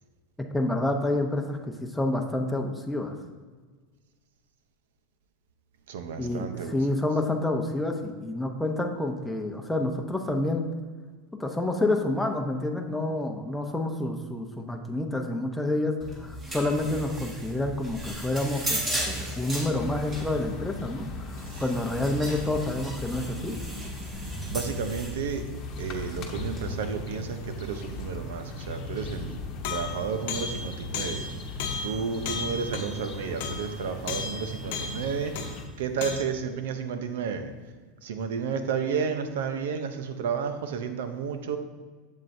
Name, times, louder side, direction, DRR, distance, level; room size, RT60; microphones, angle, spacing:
voice 1, 0.5-3.1 6.2-10.7 11.3-23.6, left 2 dB, 5° left, 2 dB, 0.8 m, -28 dB
voice 2, 5.9-6.8 21.5-21.6 24.5-25.5 25.8-29.4 29.7-31.3 31.8-37.5 38.0-41.6, right 6 dB, 85° right, 8 dB, 0.7 m, -32 dB
sound 1, 16.0-26.7, equal, 25° right, 1.6 m, -36 dB
sound 2, 19.7-35.7, left 1 dB, 40° left, 1.0 m, -38 dB
sound 3, 29.6-35.6 36.0-36.2, left 5 dB, 70° left, 0.8 m, -35 dB
7.5 x 7.5 x 2.7 m, 1.5 s
supercardioid pair, 135°, 0 cm